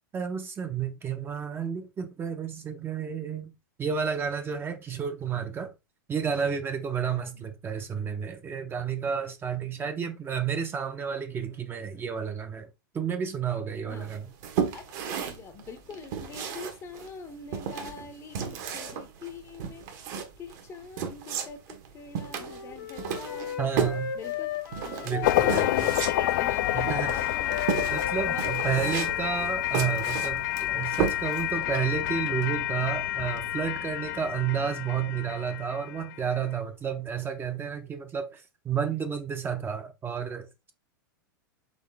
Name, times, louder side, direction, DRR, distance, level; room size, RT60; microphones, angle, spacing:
voice 1, 0.1-5.7 6.1-14.3 23.6-24.2 25.0-25.9 26.7-27.2 27.9-40.7, right 7 dB, 20° right, 0.6 m, -31 dB
voice 2, 7.1-7.4 13.8-14.1 14.7-23.7 24.1-24.5 24.8-27.7 28.2-29.0, left 5 dB, 25° left, 0.7 m, -44 dB
sound 1, 14.1-31.6, right 7 dB, 55° right, 1.1 m, -34 dB
Wind instrument woodwind instrument, 22.3-29.7, left 10 dB, 80° left, 1.3 m, -36 dB
sound 2, 25.2-36.4, left 14 dB, 60° left, 0.4 m, -29 dB
4.1 x 3.7 x 3.4 m
hypercardioid pair, 115°, 11 cm